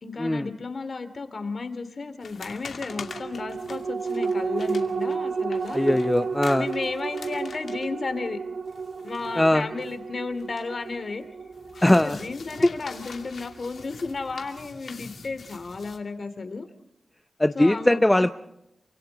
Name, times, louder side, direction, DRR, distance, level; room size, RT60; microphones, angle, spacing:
voice 1, 0.0-5.9 6.6-8.4 9.0-11.2 11.7-16.7 17.5-18.3, left 4 dB, 55° left, 9 dB, 2.7 m, -33 dB
sound 1, 2.2-10.9 11.2-16.0, left 5 dB, 80° left, 2.4 m, -44 dB
sound 2, 2.9-13.7 14.1-14.2, right 5 dB, 90° right, 1.7 m, -32 dB
voice 2, 5.7-6.7 9.4-9.7 11.8-12.2 12.6-12.7 17.4-18.3, left 1 dB, 15° left, 9 dB, 0.7 m, -20 dB
28.0 x 25.5 x 4.0 m, 0.79 s
wide cardioid pair, 85°, 0 cm